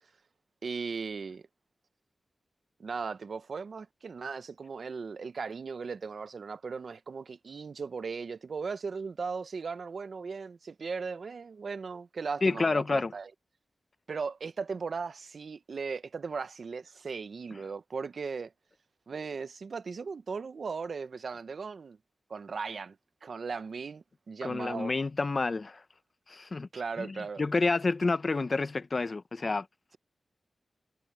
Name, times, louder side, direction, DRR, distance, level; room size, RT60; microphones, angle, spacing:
voice 1, 0.6-1.4 2.8-13.3 14.1-18.5 19.1-22.0 22.3-23.0 23.2-24.9 26.7-27.4, right 5 dB, 70° right, 1.0 m, -37 dB
voice 2, 12.4-13.1 24.4-25.8 26.3-26.7 27.0-29.7, left 3 dB, 50° left, 0.9 m, -29 dB
cardioid pair, 55°, 0 cm